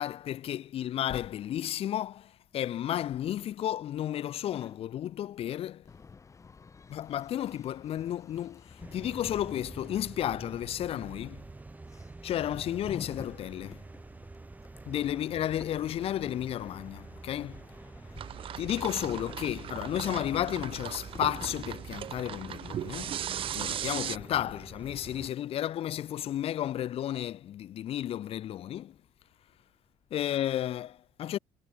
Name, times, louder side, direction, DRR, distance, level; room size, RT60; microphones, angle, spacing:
voice 1, 0.0-5.8 6.9-11.4 12.2-13.8 14.9-17.6 18.6-23.2 23.5-28.9 30.1-31.4, left 11 dB, 60° left, 1.3 m, -33 dB
sound 1, 4.5-4.8 5.8-21.5, left 5 dB, 25° left, 2.3 m, -52 dB
sound 2, 8.8-25.3, right 2 dB, 15° right, 1.3 m, -47 dB
sound 3, 18.2-24.2, right 10 dB, 55° right, 1.0 m, -37 dB
cardioid pair, 110°, 11 cm